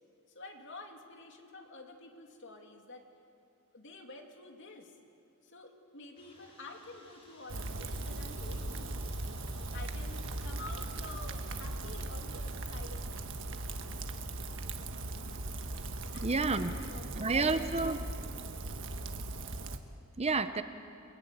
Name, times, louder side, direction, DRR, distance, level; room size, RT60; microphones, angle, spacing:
voice 1, 0.3-3.1 3.7-4.9 5.4-9.0 9.7-13.2 16.1-16.3 16.8-18.0, left 2 dB, 55° left, 3 dB, 2.9 m, -49 dB
sound 1, 6.1-16.2, left 1 dB, 25° left, 5.4 m, -61 dB
Rain, 7.5-19.8, right 2 dB, 60° right, 1.5 m, -39 dB
voice 2, 16.2-16.7 17.2-18.0 20.2-20.6, right 3 dB, 30° right, 10 dB, 0.8 m, -29 dB
29.5 x 20.5 x 9.4 m, 2.5 s
head